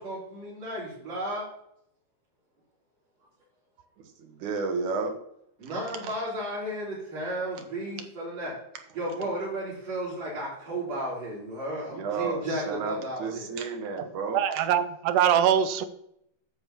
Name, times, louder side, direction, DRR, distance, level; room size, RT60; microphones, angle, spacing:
voice 1, 0.0-1.4 5.6-8.5 8.9-13.5, right 1 dB, 55° right, -9 dB, 4.7 m, -33 dB
voice 2, 4.2-5.1 11.9-14.6, right 4 dB, 70° right, 5 dB, 2.7 m, -32 dB
voice 3, 14.3-15.9, right 9 dB, 90° right, 12 dB, 2.2 m, -23 dB
9.8 x 5.9 x 7.4 m, 0.76 s
omnidirectional pair, 3.7 m